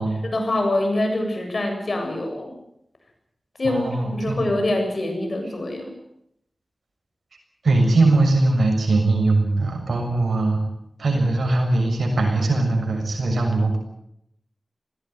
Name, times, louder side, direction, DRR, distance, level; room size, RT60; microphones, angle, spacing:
voice 1, 0.3-2.5 3.6-5.9, left 1 dB, 60° left, 3 dB, 7.8 m, -24 dB
voice 2, 3.6-4.5 7.6-10.6 11.0-13.8, right 2 dB, 90° right, 2 dB, 7.0 m, -20 dB
20.5 x 17.5 x 9.6 m, 0.76 s
cardioid pair, 50°, 0 cm